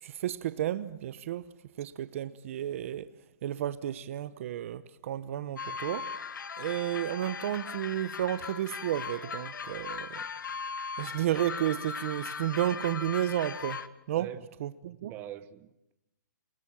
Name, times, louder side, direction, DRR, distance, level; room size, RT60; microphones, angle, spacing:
voice 1, 0.0-1.5 1.8-3.1 3.4-6.1 6.6-10.2 11.0-14.3 14.6-15.1, right 12 dB, 45° right, 0.9 m, -32 dB
sound 1, 5.6-13.9, left 5 dB, 80° left, 1.6 m, -38 dB
voice 2, 14.1-14.5 15.0-15.9, right 12 dB, 20° right, 1.1 m, -43 dB
29.5 x 20.0 x 8.9 m
hypercardioid pair, 160°, 10 cm